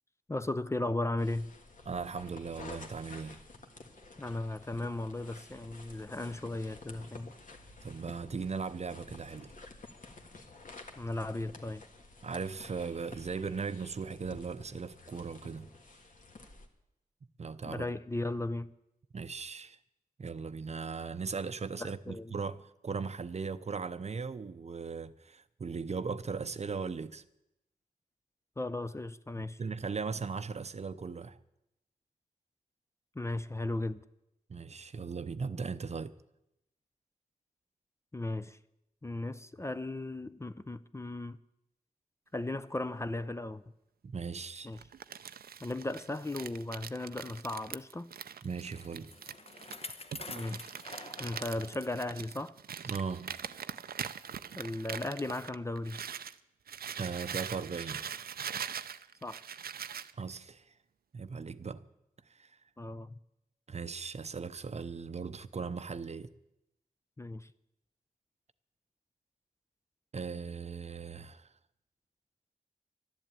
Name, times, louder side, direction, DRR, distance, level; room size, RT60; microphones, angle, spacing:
voice 1, 0.3-1.5 4.2-7.3 11.0-11.8 17.7-18.7 21.8-22.3 28.6-29.6 33.2-34.0 38.1-38.6 39.0-41.4 42.3-43.6 44.6-44.8 45.6-48.1 50.3-50.6 51.2-52.5 54.6-56.0 59.2-59.4 62.8-63.2 67.2-67.5, left 2 dB, 20° left, 0.5 m, -36 dB
sound 1, 1.2-16.7, left 3 dB, 60° left, 1.7 m, -51 dB
voice 2, 1.9-3.4 7.8-9.5 12.2-15.7 17.4-17.9 19.1-19.8 20.2-27.2 29.4-31.4 34.5-36.2 44.0-44.7 48.4-49.1 52.8-53.4 57.0-58.1 60.1-60.7 61.1-61.8 62.3-62.5 63.7-66.3 70.1-71.5, right 5 dB, 45° right, 0.6 m, -38 dB
Crumpling crinkling, 44.8-56.3 56.7-60.1, right 8 dB, 90° right, 0.5 m, -42 dB
Bicycle, 48.2-52.1 52.6-52.7 53.5-53.6, left 3 dB, 40° left, 1.0 m, -47 dB
12.0 x 11.0 x 8.9 m
wide cardioid pair, 110°, 15 cm